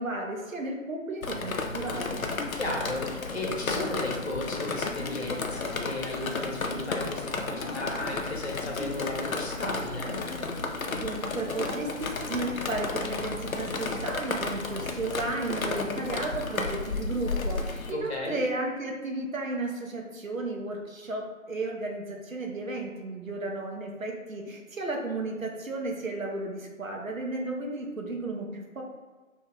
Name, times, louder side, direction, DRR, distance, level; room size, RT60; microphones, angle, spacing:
voice 1, 0.0-2.3 10.9-28.8, right 2 dB, 80° right, 1 dB, 0.8 m, -34 dB
Drip, 1.2-17.9, left 3 dB, 85° left, 0.5 m, -33 dB
voice 2, 2.5-10.2 17.9-18.4, left 2 dB, 50° left, -1 dB, 0.9 m, -34 dB
2.9 x 2.7 x 3.5 m, 1.3 s
figure-of-eight pair, 150°, 40 cm